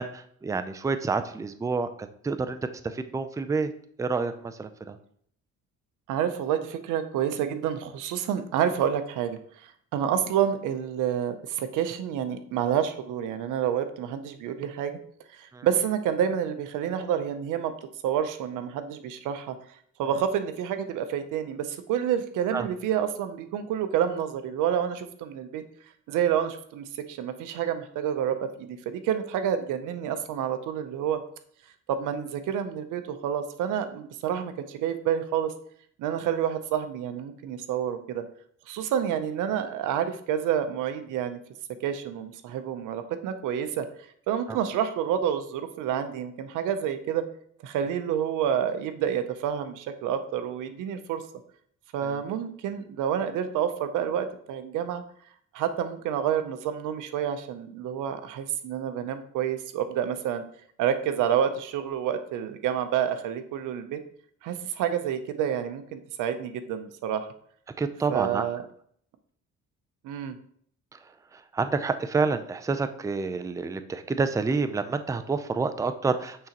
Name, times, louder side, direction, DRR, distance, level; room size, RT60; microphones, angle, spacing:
voice 1, 0.0-1.9 2.2-3.7 4.0-5.0 15.5-15.7 22.5-22.7 44.5-44.6 52.0-52.2 67.8-68.4 71.3-76.5, right 4 dB, 10° right, 10 dB, 0.4 m, -28 dB
voice 2, 6.1-15.0 15.3-17.7 18.0-19.5 20.0-25.6 26.1-31.2 31.9-35.5 36.0-38.2 38.7-41.4 41.8-43.9 44.3-47.3 47.6-51.2 51.9-55.0 55.5-60.4 60.8-64.0 64.4-67.3 68.1-68.6 70.0-70.3, right 9 dB, 90° right, 10 dB, 0.6 m, -28 dB
8.7 x 3.8 x 2.9 m, 0.63 s
cardioid pair, 90°, 30 cm